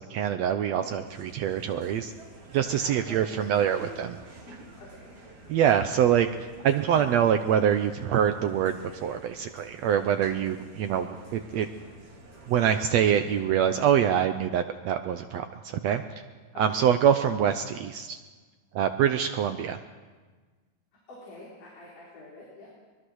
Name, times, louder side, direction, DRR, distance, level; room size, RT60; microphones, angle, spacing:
voice 1, 0.0-2.1 2.5-4.2 5.5-6.3 6.6-11.7 12.5-16.0 16.6-18.2 18.7-19.8, right 9 dB, 85° right, 8 dB, 1.5 m, -25 dB
sound 1, 1.0-13.4, right 2 dB, 55° right, 5.3 m, -49 dB
voice 2, 2.6-4.1 4.5-5.1 10.2-10.4 16.5-16.8 21.1-22.8, left 2 dB, 65° left, -5 dB, 5.5 m, -46 dB
23.5 x 21.0 x 6.3 m, 1.4 s
omnidirectional pair, 4.0 m